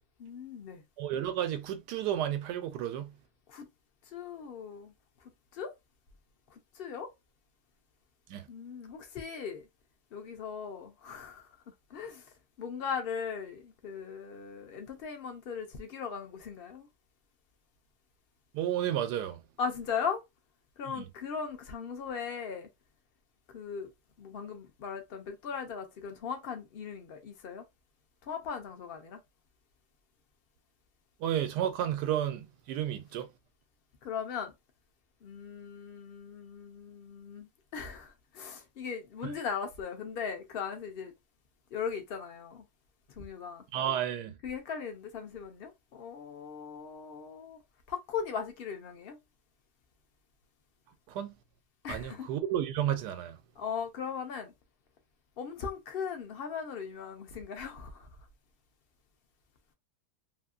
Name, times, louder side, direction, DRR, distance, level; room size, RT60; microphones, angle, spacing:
voice 1, 0.2-0.8 3.5-3.7 4.1-4.9 5.5-5.7 6.5-7.1 8.5-9.6 10.1-11.5 11.9-12.3 12.6-16.9 19.6-20.2 20.8-22.7 23.5-23.9 24.2-27.6 28.2-29.2 34.0-34.5 35.2-41.1 41.7-42.6 43.2-43.6 44.4-47.6 47.9-49.2 51.8-52.3 53.6-54.5 55.4-58.1, left 6 dB, 60° left, 0.6 m, -38 dB
voice 2, 1.0-3.1 8.3-8.5 18.5-19.4 20.9-21.1 31.2-33.3 39.2-39.3 43.7-44.4 51.1-51.3 51.9-53.4, right 11 dB, 90° right, 1.2 m, -32 dB
2.8 x 2.7 x 2.3 m
omnidirectional pair, 1.7 m